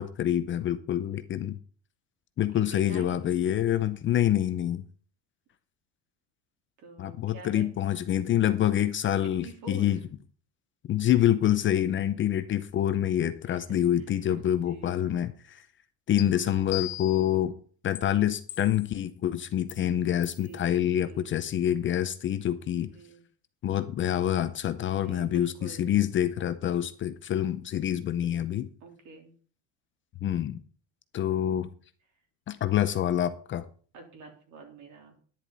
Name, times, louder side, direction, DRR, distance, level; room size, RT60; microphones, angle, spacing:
voice 1, 0.0-1.6 2.4-4.8 7.0-10.0 10.9-15.6 16.1-17.6 17.8-22.9 23.6-28.7 30.2-30.6 31.1-31.7 32.5-33.6, left 11 dB, 30° left, 0.6 m, -26 dB
voice 2, 2.5-3.4 6.8-7.7 9.2-10.0 13.5-14.1 14.5-15.1 16.4-16.7 20.4-21.4 22.9-23.2 24.9-25.9 28.8-29.3 33.9-35.2, right 3 dB, 50° right, 3.6 m, -47 dB
sound 1, 16.2-16.3 16.7-17.3 18.0-18.1 18.5-19.0 19.7-19.8 20.2-20.4, left 17 dB, 75° left, 1.5 m, -38 dB
10.5 x 10.0 x 4.1 m
cardioid pair, 150°, 37 cm